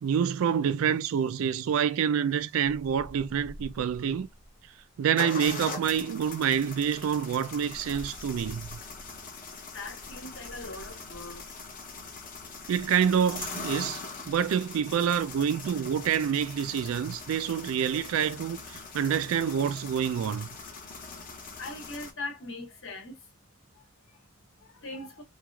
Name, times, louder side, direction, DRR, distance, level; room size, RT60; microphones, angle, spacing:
voice 1, 0.0-4.3 5.0-8.8 12.7-14.0 14.3-20.5, right 8 dB, 70° right, 0.3 m, -27 dB
sound 1, 2.6-4.5 5.2-22.1, left 4 dB, 40° left, 0.6 m, -42 dB
voice 2, 9.4-12.0 21.2-25.2, left 2 dB, 65° left, 1.1 m, -42 dB
3.1 x 2.4 x 2.3 m
head